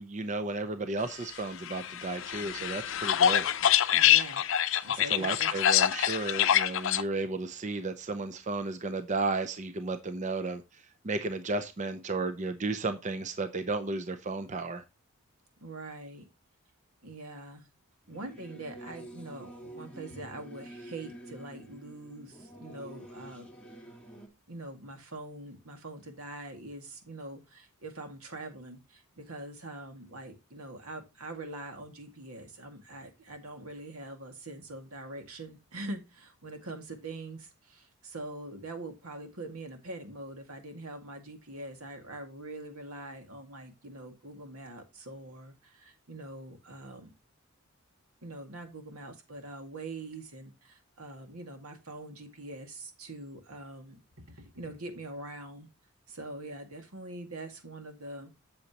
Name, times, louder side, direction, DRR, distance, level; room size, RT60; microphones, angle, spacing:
voice 1, 0.0-3.5 5.1-14.8, right 3 dB, 35° right, 10 dB, 0.6 m, -33 dB
sound 1, 1.7-7.0, left 10 dB, 60° left, 0.5 m, -25 dB
voice 2, 3.9-5.5 15.6-16.3 17.0-17.7 18.1-23.5 24.5-47.1 48.2-55.7 56.1-58.3, right 2 dB, 90° right, 5 dB, 2.0 m, -43 dB
Singing / Musical instrument, 18.0-24.3, right 1 dB, 5° left, 1.8 m, -48 dB
8.2 x 7.1 x 2.9 m, 0.25 s
head